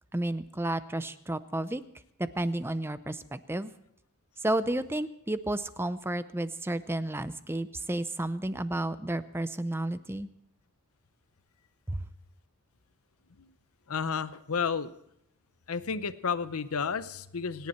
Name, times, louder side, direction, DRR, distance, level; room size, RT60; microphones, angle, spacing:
voice 1, 0.1-1.8 2.4-3.7 4.4-10.3 11.9-12.1, right 1 dB, 10° right, 13 dB, 0.5 m, -32 dB
voice 2, 13.9-14.9 15.7-17.7, left 6 dB, 75° left, 13 dB, 0.7 m, -31 dB
27.0 x 10.5 x 4.4 m, 0.75 s
head